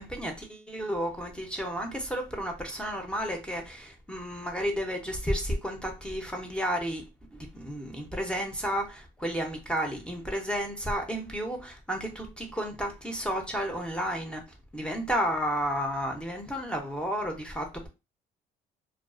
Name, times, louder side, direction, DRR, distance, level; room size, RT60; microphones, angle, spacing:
voice 1, 0.0-7.0 7.3-14.4 14.7-17.9, equal, 5° left, 0.6 m, -32 dB
2.3 x 2.3 x 2.4 m
cardioid pair, 110°, 17 cm